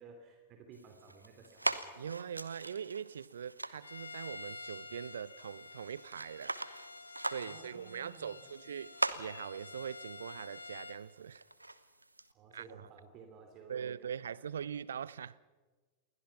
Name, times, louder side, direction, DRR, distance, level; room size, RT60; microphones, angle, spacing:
voice 1, 0.0-2.3 7.4-8.6 12.3-14.5, right 5 dB, 35° right, 3.0 m, -56 dB
sound 1, 0.7-12.3, right 2 dB, 85° right, 1.0 m, -42 dB
voice 2, 2.0-6.6 7.3-11.4 12.5-12.9 13.7-15.4, right 8 dB, 65° right, 0.6 m, -42 dB
Bowed string instrument, 3.8-11.1, left 3 dB, 80° left, 1.5 m, -49 dB
28.5 x 21.5 x 5.9 m
figure-of-eight pair, 90°, 0 cm